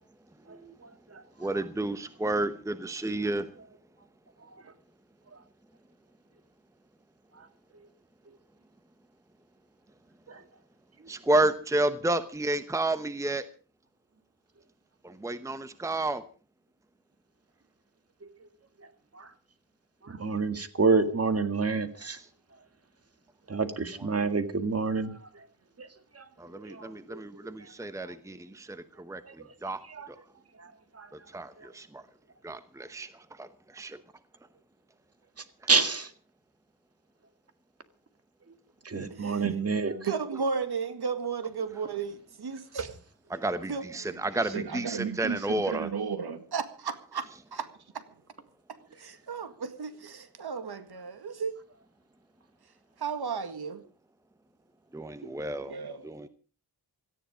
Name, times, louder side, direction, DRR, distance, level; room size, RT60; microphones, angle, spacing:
voice 1, 0.5-1.2 5.3-5.4 7.4-7.5 10.3-10.4 18.2-18.5 18.8-18.9 19.1-19.3 20.0-22.2 23.5-25.4 25.8-26.3 26.5-27.2 27.6-27.7 29.2-29.5 29.9-30.1 30.6-31.1 31.6-31.7 35.7-36.1 38.8-39.9, right 4 dB, 35° right, 9 dB, 1.9 m, -29 dB
voice 2, 1.4-3.5 11.1-13.4 15.0-16.2 24.0-24.3 26.4-29.8 30.1-30.2 31.1-32.0 32.4-34.0 38.9-39.1 43.3-45.9 54.9-55.8 56.0-56.3, right 2 dB, 5° right, 12 dB, 0.9 m, -31 dB
voice 3, 39.1-42.9 43.3-47.7 47.9-48.0 49.0-51.5 53.0-53.8 55.3-56.0, right 5 dB, 65° right, 10 dB, 1.9 m, -35 dB
17.5 x 14.0 x 5.1 m, 0.38 s
wide cardioid pair, 155°, 41 cm